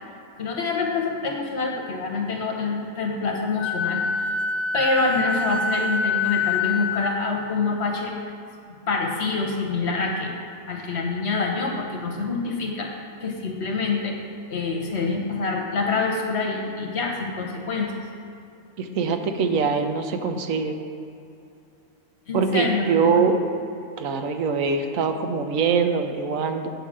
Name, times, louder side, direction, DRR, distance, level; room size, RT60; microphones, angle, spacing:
voice 1, 0.4-4.4 4.7-8.1 8.9-10.3 10.7-14.2 14.5-17.9 22.3-23.2, left 4 dB, 55° left, 1 dB, 1.2 m, -26 dB
Wind instrument woodwind instrument, 3.6-7.1, left 4 dB, 90° left, 1.2 m, -25 dB
voice 2, 18.8-20.8 22.3-23.4 24.0-26.7, right 5 dB, 75° right, 6 dB, 1.1 m, -23 dB
8.0 x 4.9 x 7.3 m, 2.6 s
omnidirectional pair, 1.4 m